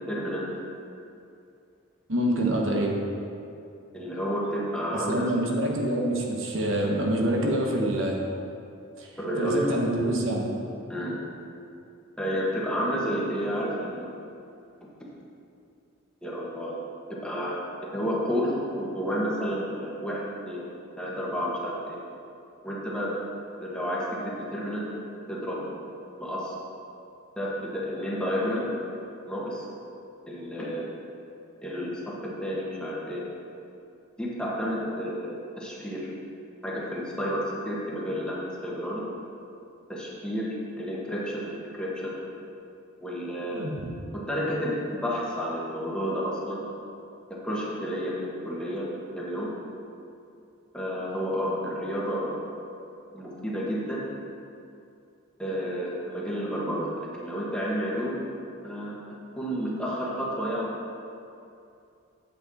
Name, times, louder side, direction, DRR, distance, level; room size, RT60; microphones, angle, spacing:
voice 1, 0.1-0.4 3.9-5.3 9.2-9.8 10.9-11.1 12.2-14.1 15.0-15.1 16.2-16.7 17.1-17.5 17.8-20.6 21.0-22.0 22.6-23.1 23.6-24.8 25.3-25.6 26.2-26.5 27.4-28.7 29.3-29.6 30.3-30.9 31.6-33.2 34.2-36.1 36.6-39.0 39.9-42.2 43.0-43.7 44.1-46.7 47.3-49.5 50.7-52.4 53.1-54.1 55.4-58.3 58.6-59.0 59.4-60.7, equal, 5° left, -6 dB, 1.3 m, -31 dB
voice 2, 2.1-3.0 4.9-8.2 9.0-9.1 9.4-10.5 43.5-43.7, right 1 dB, 70° right, -1 dB, 1.2 m, -26 dB
8.6 x 8.0 x 4.2 m, 2.6 s
head